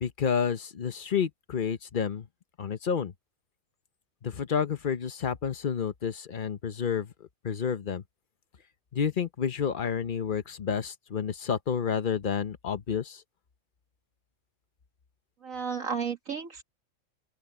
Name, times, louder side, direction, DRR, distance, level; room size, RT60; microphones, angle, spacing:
voice 1, 0.0-2.3 2.6-3.1 4.2-8.0 8.9-13.2, left 7 dB, 40° left, 0.9 m, -30 dB
voice 2, 15.4-16.6, right 6 dB, 70° right, 2.3 m, -33 dB
open air
omnidirectional pair, 1.5 m